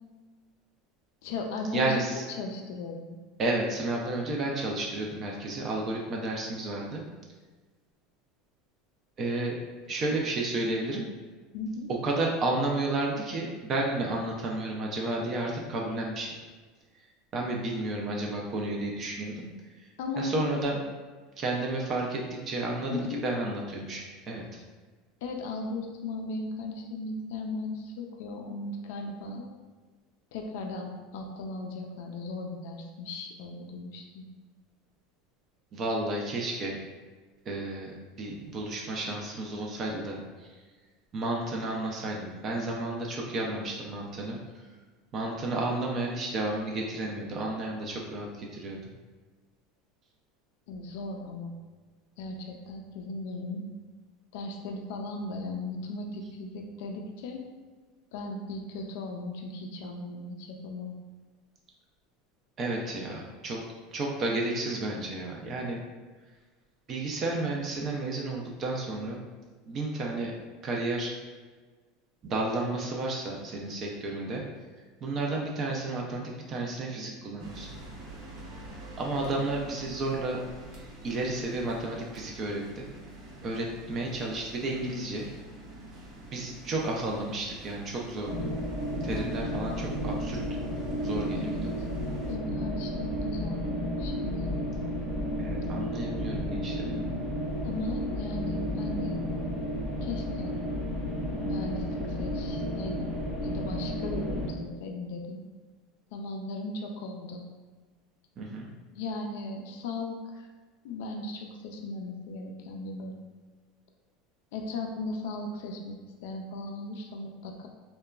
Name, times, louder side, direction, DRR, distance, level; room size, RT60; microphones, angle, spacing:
voice 1, 1.2-3.2 11.5-11.9 20.0-20.5 22.9-23.3 25.2-29.5 30.3-34.3 50.7-51.5 52.2-53.7 54.3-57.4 58.1-60.9 91.3-91.9 92.3-94.5 97.6-99.2 100.0-100.6 101.4-105.4 106.1-107.5 108.9-110.5 110.8-113.2 114.5-117.7, left 2 dB, 75° left, 2 dB, 0.3 m, -37 dB
voice 2, 1.7-2.2 3.4-7.0 9.2-9.6 9.9-11.1 11.9-16.4 17.3-19.5 19.7-19.9 20.2-20.8 21.4-24.5 35.7-36.8 37.5-40.5 41.1-44.4 45.1-48.8 62.6-63.6 63.9-65.8 66.9-69.2 69.7-70.3 70.6-71.1 72.2-74.4 75.0-77.8 79.0-80.4 81.0-82.9 83.4-85.3 86.3-88.5 89.0-90.4 91.0-91.6 95.4-96.9 108.4-108.7, right 2 dB, 35° right, -1 dB, 0.4 m, -32 dB
sound 1, 77.4-92.3, right 1 dB, 55° right, 0.8 m, -47 dB
sound 2, 88.2-104.5, equal, 20° left, 0.8 m, -32 dB
2.8 x 2.1 x 2.3 m, 1.4 s
supercardioid pair, 125°, 0 cm